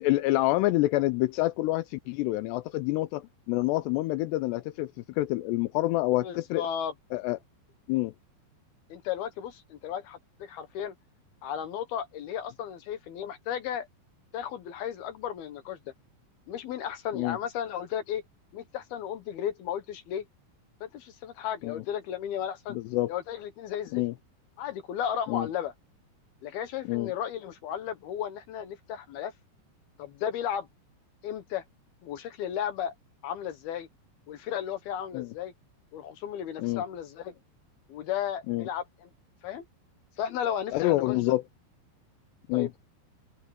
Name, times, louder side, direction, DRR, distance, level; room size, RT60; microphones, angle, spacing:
voice 1, 0.0-4.9 5.2-6.6 7.1-7.4 7.9-8.1 17.1-17.4 21.6-21.8 22.7-23.1 23.9-24.1 25.3-25.5 26.9-27.1 35.1-35.3 36.6-36.8 38.5-38.7 40.7-41.4 42.5-42.7, left 18 dB, 85° left, 2.5 m, -27 dB
voice 2, 6.1-6.9 8.9-10.9 11.4-13.9 14.3-15.8 16.5-18.2 18.5-20.2 20.8-22.8 23.1-24.0 24.6-25.7 26.4-29.3 30.0-30.7 31.2-31.6 32.0-32.9 33.2-33.9 34.3-35.5 35.9-37.3 37.9-39.1 39.4-39.6 40.2-41.2 42.5-42.8, left 9 dB, 70° left, 2.7 m, -34 dB
omnidirectional pair, 5.4 m